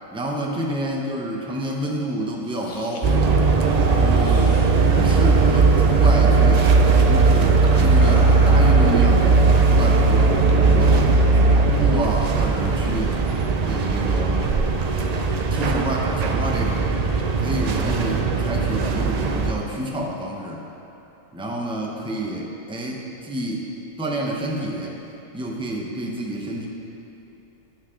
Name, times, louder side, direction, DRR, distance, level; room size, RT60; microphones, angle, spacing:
voice 1, 0.1-3.1 3.9-4.5 4.9-6.7 7.0-11.0 11.3-13.2 13.6-14.5 15.5-16.9 17.4-20.7 21.3-23.7 24.0-25.0 25.3-26.7, right 1 dB, 5° right, -1 dB, 0.6 m, -29 dB
sound 1, 2.3-3.2 4.1-4.7 5.3-5.6 5.8-6.1 6.4-6.6 7.9-8.9, left 3 dB, 55° left, 0.3 m, -35 dB
sound 2, 3.0-19.5, right 4 dB, 70° right, 0.3 m, -18 dB
11.5 x 6.3 x 3.7 m, 2.9 s
omnidirectional pair, 1.4 m